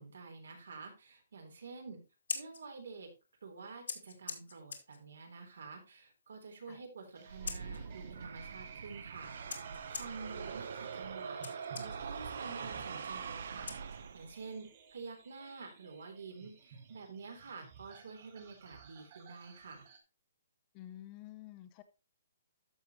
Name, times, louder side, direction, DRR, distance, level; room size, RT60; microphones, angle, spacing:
voice 1, 0.0-2.0 2.3-3.1 3.4-13.9 14.1-19.9, right 4 dB, 80° right, 3.6 m, -49 dB
Scissors, 2.0-14.4, left 5 dB, 85° left, 2.2 m, -48 dB
sound 1, 7.1-20.0, right 6 dB, 30° right, 2.2 m, -55 dB
sound 2, 7.3-14.5, right 6 dB, 55° right, 0.7 m, -43 dB
voice 2, 20.7-21.8, left 13 dB, 20° left, 0.6 m, -50 dB
13.5 x 5.5 x 3.0 m
hypercardioid pair, 175°, 0 cm